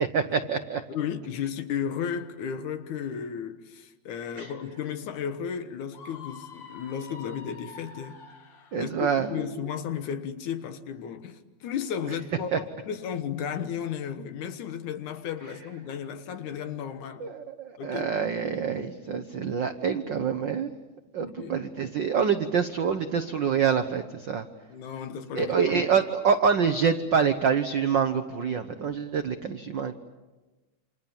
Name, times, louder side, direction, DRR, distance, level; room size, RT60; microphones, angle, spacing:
voice 1, 0.0-0.8 4.4-4.5 8.7-9.6 12.5-12.6 17.2-20.7 21.1-24.5 25.3-29.9, right 6 dB, 75° right, 1.0 m, -26 dB
voice 2, 0.9-8.2 8.8-17.3 17.8-18.1 21.2-21.6 24.7-25.7, left 8 dB, 75° left, 2.7 m, -34 dB
Screaming, 5.9-8.9, left 5 dB, 45° left, 1.9 m, -46 dB
28.5 x 27.0 x 7.2 m
omnidirectional pair, 3.5 m